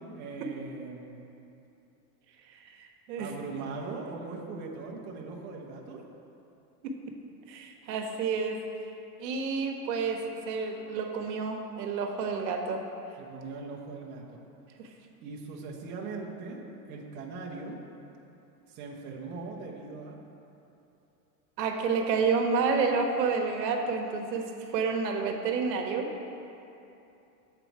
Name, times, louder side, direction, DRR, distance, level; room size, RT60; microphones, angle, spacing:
voice 1, 0.2-1.2 3.2-6.0 13.2-14.4 15.2-16.6 16.9-17.8 18.7-20.2, right 4 dB, 25° right, -2 dB, 0.5 m, -40 dB
voice 2, 2.8-3.3 6.8-6.9 7.5-8.6 9.2-12.8 14.8-14.9 21.6-26.1, right 5 dB, 90° right, 3 dB, 0.9 m, -29 dB
7.6 x 4.0 x 4.5 m, 2.8 s
supercardioid pair, 145°, 49 cm